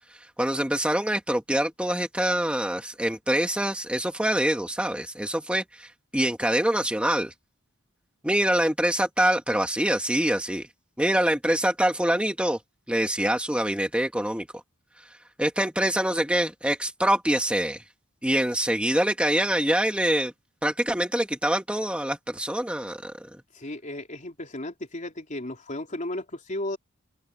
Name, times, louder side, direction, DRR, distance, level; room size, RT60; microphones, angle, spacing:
voice 1, 0.4-7.3 8.2-10.7 11.0-12.6 12.9-14.5 15.4-17.8 18.2-20.3 20.6-23.3, right 1 dB, 5° right, 1.6 m, -25 dB
voice 2, 23.5-26.8, left 1 dB, 35° left, 3.7 m, -34 dB
open air
head